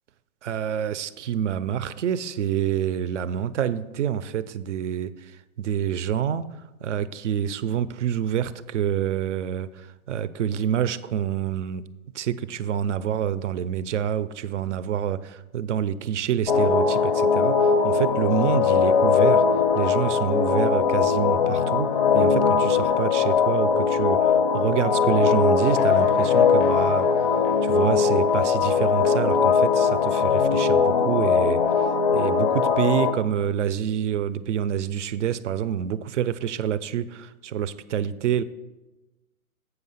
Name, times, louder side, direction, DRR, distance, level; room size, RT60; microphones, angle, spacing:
voice 1, 0.4-5.3 5.6-6.4 6.8-11.9 12.1-19.4 19.8-21.9 22.1-31.9 32.1-38.4, right 9 dB, 55° right, 16 dB, 0.5 m, -27 dB
sound 1, 16.5-33.1, left 6 dB, 40° left, 0.4 m, -20 dB
8.1 x 5.7 x 5.5 m, 1.1 s
hypercardioid pair, 160°, 42 cm